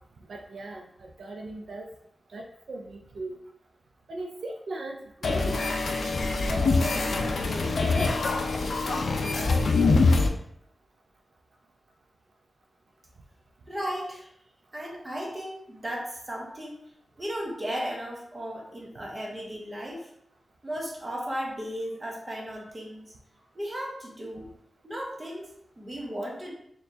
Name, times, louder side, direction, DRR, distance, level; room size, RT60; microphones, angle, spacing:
voice 1, 0.3-1.9 2.3-3.4 4.1-5.8 6.5-8.3 8.6-9.9, right 2 dB, 75° right, 1 dB, 0.4 m, -39 dB
sound 1, 5.2-10.3, left 3 dB, 65° left, 0.4 m, -24 dB
voice 2, 13.7-14.3 14.7-16.8 17.2-20.1 20.6-23.1 23.5-24.5 24.8-26.5, equal, 20° right, -2 dB, 0.9 m, -35 dB
4.2 x 3.1 x 2.6 m, 0.72 s
wide cardioid pair, 165°, 0 cm